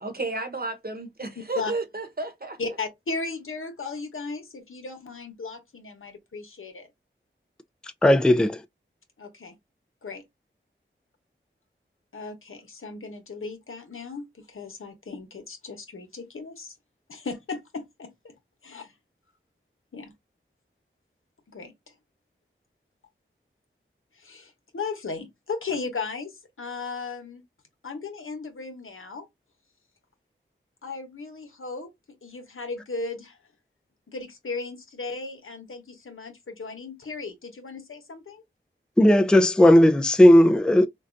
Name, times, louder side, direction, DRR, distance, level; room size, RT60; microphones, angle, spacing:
voice 1, 0.0-2.6, right 3 dB, 45° right, 1.0 m, -32 dB
voice 2, 2.6-6.9 9.2-9.5 10.0-10.2 12.1-16.7 17.1-18.3 18.6-18.9 19.9-20.1 21.5-21.7 24.1-27.4 27.8-29.3 30.8-31.9 32.2-33.4 34.1-38.4, left 4 dB, 85° left, 0.9 m, -36 dB
voice 3, 8.0-8.6 39.0-40.9, left 1 dB, 5° left, 0.4 m, -16 dB
3.8 x 2.3 x 2.5 m
wide cardioid pair, 45°, 21 cm